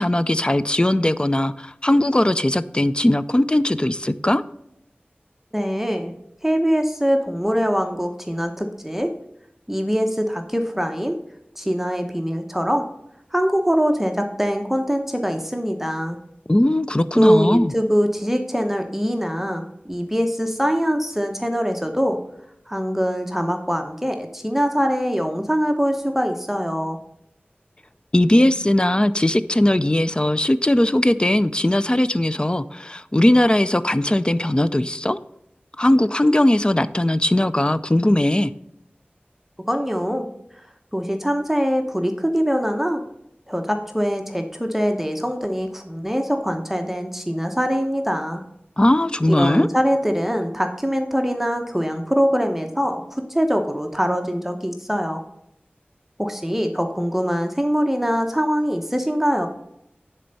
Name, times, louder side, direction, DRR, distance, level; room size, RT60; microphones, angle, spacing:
voice 1, 0.0-4.4 16.5-17.7 28.1-35.2 35.8-38.5 48.8-49.7, left 1 dB, 25° left, 13 dB, 0.4 m, -19 dB
voice 2, 5.5-6.1 6.4-9.1 9.7-11.2 11.6-12.9 13.3-16.2 17.1-22.2 22.7-27.0 39.7-40.3 40.9-43.0 43.5-48.4 49.3-55.2 56.2-59.5, equal, 5° right, 5 dB, 0.9 m, -23 dB
10.0 x 4.4 x 5.3 m, 0.78 s
wide cardioid pair, 45°, 4 cm